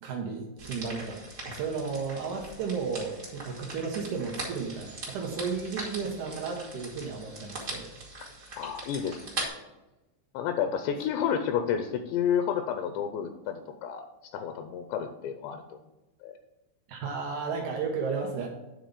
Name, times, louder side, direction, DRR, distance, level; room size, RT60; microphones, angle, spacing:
voice 1, 0.0-7.9 16.9-18.5, right 5 dB, 90° right, 0 dB, 1.7 m, -33 dB
sound 1, 0.6-9.5, right 2 dB, 70° right, 0.7 m, -41 dB
voice 2, 8.6-9.5 10.3-14.1 14.3-15.8 16.2-16.3, left 8 dB, 85° left, 8 dB, 2.7 m, -30 dB
9.3 x 3.9 x 7.0 m, 1.0 s
omnidirectional pair, 5.3 m